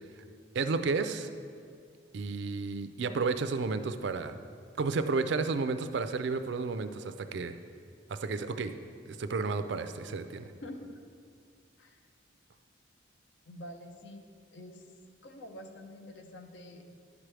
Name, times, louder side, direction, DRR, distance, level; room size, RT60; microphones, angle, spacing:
voice 1, 0.5-1.3 2.1-4.4 4.8-7.6 8.1-8.7 9.1-10.5, right 4 dB, 65° right, 9 dB, 0.4 m, -32 dB
voice 2, 10.6-10.9 11.8-12.0 13.5-14.2 14.5-14.8 15.2-16.9, left 1 dB, 70° left, 5 dB, 0.7 m, -46 dB
10.5 x 6.1 x 3.3 m, 2.2 s
head